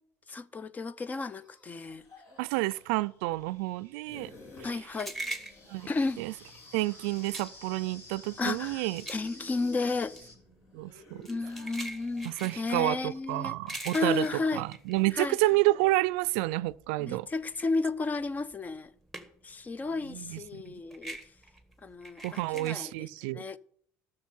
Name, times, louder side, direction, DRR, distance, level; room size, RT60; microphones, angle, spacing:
voice 1, 0.3-2.1 4.6-5.1 5.9-6.2 8.4-10.1 11.3-14.7 15.1-15.4 17.0-18.9 19.4-21.2 21.8-22.2 22.5-23.1 23.3-23.6, left 3 dB, 25° left, 0.6 m, -33 dB
sound 1, 1.0-2.9 4.0-4.7 5.0-12.6, left 2 dB, 55° left, 3.0 m, -54 dB
voice 2, 2.4-4.3 4.6-4.7 5.7-5.9 6.2-6.3 6.7-9.1 10.7-11.2 12.2-14.3 14.5-17.3 20.1-20.7 22.2-23.4, right 20 dB, 85° right, 0.4 m, -29 dB
sound 2, 2.9-10.4, left 2 dB, 40° left, 4.1 m, -52 dB
sound 3, 4.2-15.8 16.2-19.6 19.9-22.7, right 2 dB, 5° left, 1.7 m, -43 dB
13.0 x 6.6 x 5.6 m
supercardioid pair, 105°, 6 cm